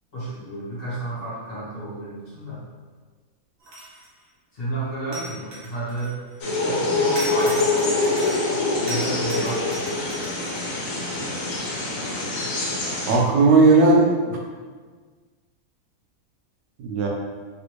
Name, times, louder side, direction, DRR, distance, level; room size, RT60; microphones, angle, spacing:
voice 1, 0.1-2.6 4.5-6.2 6.6-7.6 8.9-9.9, right 2 dB, 40° left, -9 dB, 1.1 m, -32 dB
sound 1, 3.6-4.2 5.1-6.4 7.2-8.6 8.9-11.0, right 1 dB, 65° right, 1.2 m, -37 dB
sound 2, 6.4-13.2, left 2 dB, 65° left, 1.0 m, -24 dB
voice 2, 13.1-14.4 16.8-17.1, right 3 dB, 85° right, 0 dB, 1.2 m, -16 dB
3.2 x 2.5 x 3.0 m, 1.5 s
omnidirectional pair, 1.7 m